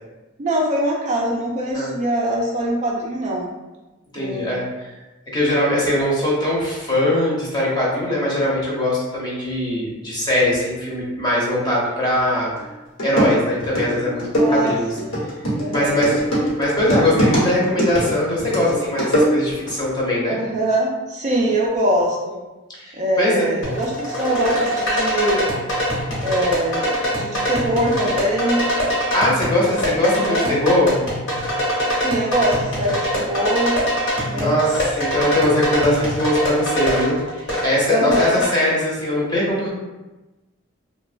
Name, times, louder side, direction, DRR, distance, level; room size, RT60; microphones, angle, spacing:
voice 1, 0.4-3.5 4.2-4.5 14.3-15.2 15.6-16.0 20.3-22.4 22.9-25.6 26.2-28.6 30.2-30.6 32.0-33.7 34.3-34.6 37.9-38.4, right 1 dB, 35° right, -2 dB, 0.3 m, -23 dB
voice 2, 4.1-4.9 5.3-12.5 13.0-14.9 15.7-16.2 16.6-20.4 22.7-23.5 29.1-31.0 34.4-39.7, left 1 dB, 20° left, -5 dB, 0.7 m, -21 dB
sound 1, 12.6-12.7 13.0-19.7, equal, 85° left, 1.0 m, -21 dB
sound 2, 23.6-38.5, equal, 60° left, 1.0 m, -23 dB
3.0 x 2.1 x 2.4 m, 1.1 s
head